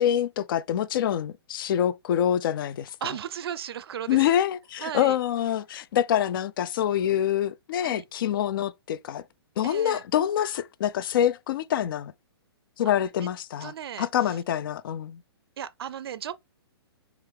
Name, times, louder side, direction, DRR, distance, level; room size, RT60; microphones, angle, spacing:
voice 1, 0.0-2.9 4.1-9.2 9.6-12.1 12.8-15.2, left 10 dB, 55° left, 0.4 m, -26 dB
voice 2, 3.0-4.3 4.8-5.2 7.8-8.0 9.6-10.0 13.6-14.4 15.6-16.3, right 9 dB, 65° right, 0.4 m, -35 dB
6.3 x 2.4 x 3.4 m
hypercardioid pair, 135°, 14 cm